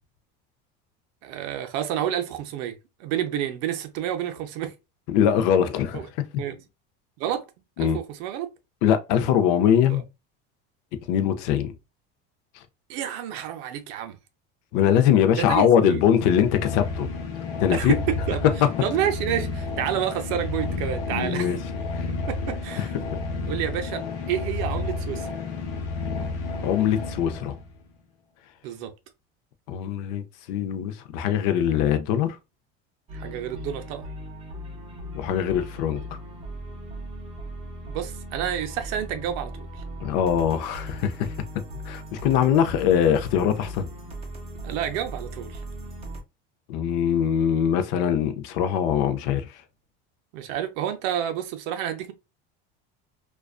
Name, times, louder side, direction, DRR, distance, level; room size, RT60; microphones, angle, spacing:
voice 1, 1.2-4.7 5.9-6.1 6.4-6.6 7.2-7.5 7.8-8.5 9.9-10.0 12.9-14.2 15.4-16.0 17.7-18.5 18.8-21.5 22.3-22.9 23.5-24.0 24.3-25.3 28.6-28.9 33.1-34.0 37.8-39.7 44.6-45.6 50.3-52.1, right 10 dB, 60° right, 0.5 m, -29 dB
voice 2, 5.1-6.2 7.8-8.0 8.8-10.0 11.1-11.7 14.7-17.1 17.6-17.9 21.1-21.6 22.0-22.1 22.8-22.9 26.6-27.6 29.7-30.2 30.5-32.4 35.1-36.0 40.0-41.3 41.9-43.9 46.7-49.4, left 9 dB, 60° left, 0.5 m, -22 dB
sound 1, 16.1-27.7, left 3 dB, 85° left, 0.8 m, -31 dB
sound 2, 33.1-46.2, equal, 20° right, 0.7 m, -38 dB
2.4 x 2.2 x 2.3 m
cardioid pair, 145°, 29 cm